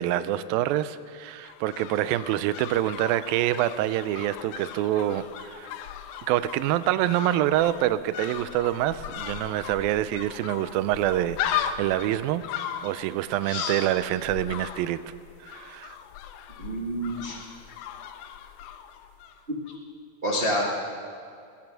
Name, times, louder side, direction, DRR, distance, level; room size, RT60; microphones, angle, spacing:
voice 1, 0.0-5.7 6.3-12.4 12.8-15.0 15.4-16.0, right 13 dB, 80° right, 14 dB, 2.3 m, -26 dB
sound 1, 1.2-19.4 19.7-19.8, left 9 dB, 85° left, 2.5 m, -37 dB
voice 2, 13.4-13.8 16.6-17.4 20.2-20.7, equal, 50° right, -5 dB, 0.6 m, -28 dB
19.5 x 10.5 x 6.3 m, 2.4 s
omnidirectional pair, 4.3 m